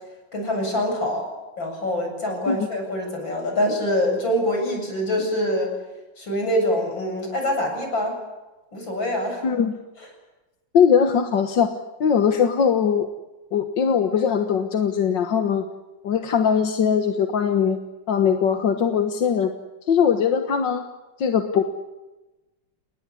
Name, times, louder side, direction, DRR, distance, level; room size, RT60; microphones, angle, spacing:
voice 1, 0.3-1.3 1.6-5.7 6.2-8.2 8.7-9.4 10.0-10.1, left 1 dB, 90° left, 3 dB, 8.7 m, -25 dB
voice 2, 9.4-9.7 10.7-11.7 12.0-13.1 13.5-15.7 16.0-17.8 18.1-19.5 19.9-20.8 21.2-21.6, left 7 dB, 75° left, 6 dB, 2.1 m, -20 dB
29.0 x 20.0 x 9.9 m, 1.1 s
omnidirectional pair, 2.0 m